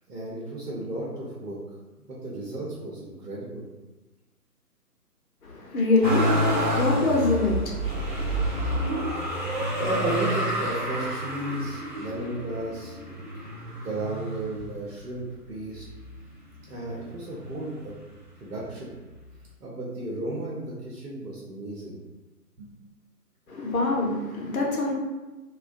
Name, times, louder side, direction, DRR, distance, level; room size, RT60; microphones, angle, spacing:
voice 1, 0.1-1.6 2.1-3.6 9.8-13.2 13.8-15.8 16.7-18.0 18.4-18.9 19.6-22.0 22.6-22.7, right 2 dB, 70° right, -6 dB, 0.8 m, -33 dB
voice 2, 5.4-8.7 23.5-24.9, left 2 dB, 60° left, -1 dB, 0.7 m, -26 dB
Motor vehicle (road), 6.0-15.2 15.8-16.6 16.8-18.0 19.0-19.1, equal, 35° right, 0.5 m, -29 dB
2.4 x 2.1 x 2.5 m, 1.2 s
figure-of-eight pair, 150°, 48 cm